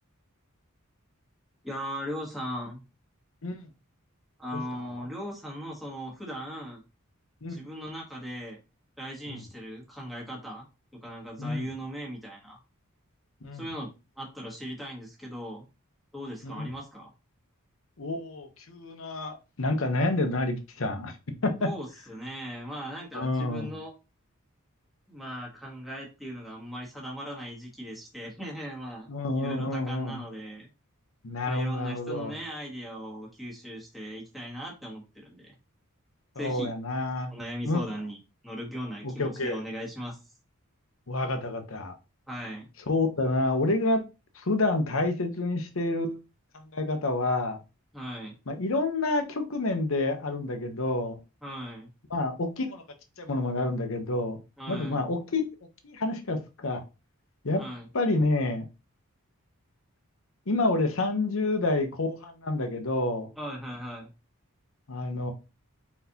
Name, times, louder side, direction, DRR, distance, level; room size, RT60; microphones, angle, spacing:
voice 1, 1.6-2.8 4.4-6.8 7.5-8.6 9.0-10.7 10.9-12.6 13.5-13.9 14.2-15.6 16.1-17.1 21.6-23.9 25.1-29.1 29.3-30.7 31.5-35.5 36.4-36.7 37.3-38.2 38.4-40.2 42.3-42.7 47.9-48.3 51.4-51.9 54.6-55.0 57.5-57.9 63.4-64.1, equal, ahead, -3 dB, 1.3 m, -38 dB
voice 2, 18.0-21.1 21.4-21.7 23.1-23.7 29.1-30.2 31.2-32.3 36.4-37.3 37.6-37.8 39.0-39.6 41.1-41.9 42.9-44.0 44.3-46.2 46.5-47.6 48.5-51.2 52.1-52.8 53.2-54.4 54.7-55.4 55.8-56.8 57.4-57.6 57.9-58.6 60.5-63.3 64.9-65.3, left 2 dB, 65° left, 6 dB, 0.8 m, -28 dB
4.1 x 4.0 x 2.8 m, 0.28 s
head